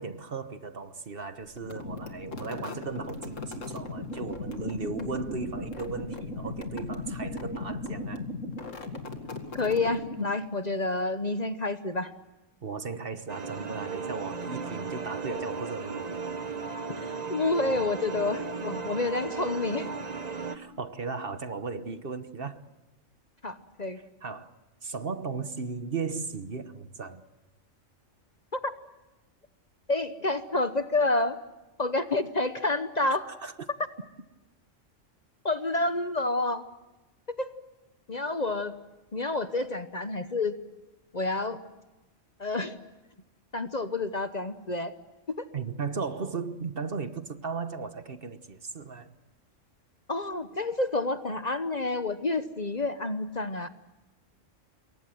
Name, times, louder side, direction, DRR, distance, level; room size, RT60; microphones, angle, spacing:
voice 1, 0.0-8.3 12.6-16.2 20.5-22.6 24.2-24.5 24.8-27.2 33.4-33.5 45.5-49.1, right 4 dB, 50° right, 1.3 m, -36 dB
sound 1, 1.5-10.5, left 2 dB, 75° left, 2.6 m, -37 dB
sound 2, 3.1-9.3, equal, 55° left, 2.7 m, -52 dB
voice 2, 9.5-12.1 17.0-19.9 23.4-24.0 28.5-28.7 29.9-31.4 31.8-33.3 35.4-36.7 37.3-37.5 38.1-38.7 39.1-40.6 41.1-41.6 42.4-42.8 43.5-44.9 50.1-53.7, left 2 dB, 35° left, 1.0 m, -29 dB
sound 3, 13.3-20.6, right 5 dB, 35° right, 1.3 m, -36 dB
27.5 x 22.5 x 7.7 m
omnidirectional pair, 1.3 m